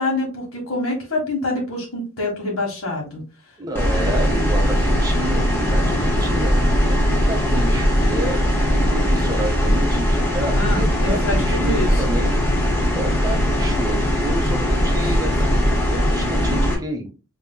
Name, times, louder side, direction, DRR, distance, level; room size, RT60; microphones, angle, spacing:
voice 1, 0.0-3.2 10.5-12.0 15.0-15.1, left 2 dB, 85° left, -1 dB, 1.3 m, -26 dB
voice 2, 3.6-12.4 13.0-17.1, equal, 20° right, 3 dB, 0.8 m, -29 dB
sound 1, 3.7-16.7, equal, 10° left, 1.1 m, -19 dB
5.3 x 2.8 x 2.2 m, 0.32 s
head